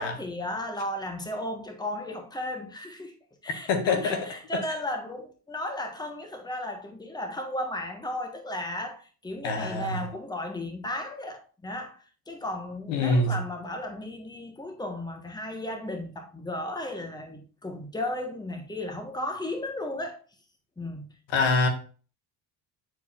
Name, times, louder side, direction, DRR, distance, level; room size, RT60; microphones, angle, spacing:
voice 1, 0.0-3.1 3.4-12.0 12.3-20.2 20.8-21.1, left 1 dB, 10° left, 1.4 m, -35 dB
voice 2, 3.7-4.2 9.4-10.0 12.9-13.4 21.3-21.7, left 3 dB, 70° left, 1.7 m, -24 dB
9.2 x 4.7 x 2.5 m
supercardioid pair, 80°, 46 cm